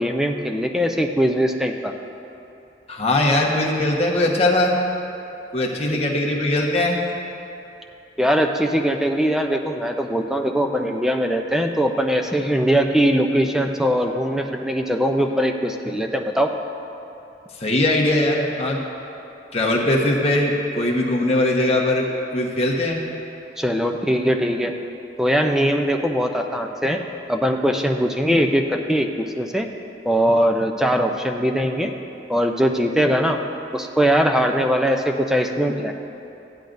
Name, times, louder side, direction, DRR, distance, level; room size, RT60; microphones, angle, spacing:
voice 1, 0.0-1.9 5.9-6.0 8.2-16.5 23.6-24.7 25.2-27.0 27.3-29.7 30.0-31.9 32.3-33.4 33.7-35.9, equal, 5° right, 3 dB, 0.5 m, -21 dB
voice 2, 2.9-4.7 5.5-7.0 17.6-18.9 19.5-22.1 22.3-23.0, left 1 dB, 35° left, -2 dB, 1.2 m, -20 dB
15.5 x 10.5 x 2.6 m, 2.8 s
head